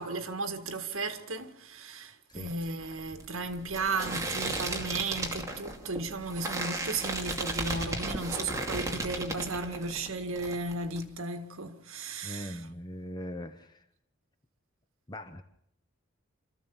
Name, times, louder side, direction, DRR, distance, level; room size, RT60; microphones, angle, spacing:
voice 1, 0.0-12.6, right 3 dB, 65° right, 1.9 m, -35 dB
sound 1, 2.3-10.1 10.4-11.0, right 2 dB, 15° right, 2.4 m, -35 dB
voice 2, 12.2-13.8 15.1-15.4, equal, 20° left, 0.9 m, -40 dB
27.0 x 14.5 x 7.1 m
head